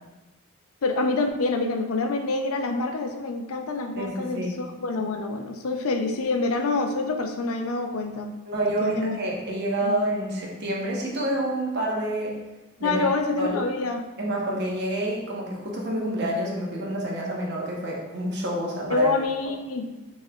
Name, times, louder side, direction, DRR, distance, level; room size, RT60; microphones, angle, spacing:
voice 1, 0.8-8.3 8.8-9.2 9.8-9.9 12.8-14.0 18.9-19.9, left 3 dB, 80° left, 5 dB, 0.5 m, -26 dB
voice 2, 4.0-4.6 8.5-12.4 12.8-13.0 13.4-13.6 14.2-19.1, right 1 dB, 50° right, -2 dB, 1.0 m, -28 dB
6.3 x 3.2 x 2.4 m, 1.1 s
head